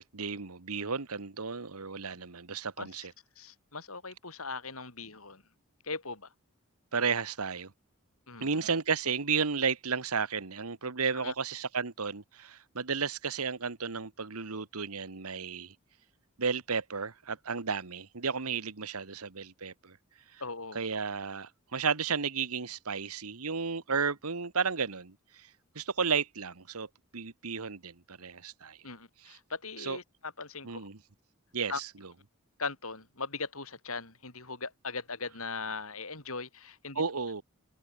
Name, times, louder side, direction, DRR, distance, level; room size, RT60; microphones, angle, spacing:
voice 1, 0.0-3.1 6.9-7.7 8.4-15.7 16.4-20.0 20.3-20.4 20.7-25.5 25.7-26.9 27.1-28.8 29.2-29.4 29.8-30.0 30.6-31.0 31.5-32.1 36.9-37.4, right 5 dB, 85° right, 1.5 m, -33 dB
voice 2, 3.4-5.4 5.8-6.3 8.3-8.5 11.1-11.3 20.4-20.8 28.8-30.9 31.7-31.8 32.6-37.0, left 4 dB, 75° left, 6.4 m, -39 dB
head